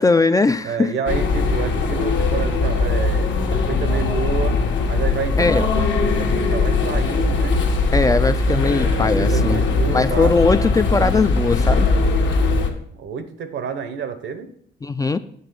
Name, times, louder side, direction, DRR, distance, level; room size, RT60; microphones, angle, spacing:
voice 1, 0.0-0.9 5.4-5.7 7.9-11.9 14.8-15.2, left 3 dB, 20° left, 0.3 m, -19 dB
voice 2, 0.6-4.6 4.9-7.6 8.8-10.3 12.7-14.5, right 6 dB, 70° right, 0.9 m, -29 dB
sound 1, 1.1-12.7, left 3 dB, 65° left, 1.2 m, -20 dB
8.0 x 3.7 x 6.7 m
cardioid pair, 90°, 20 cm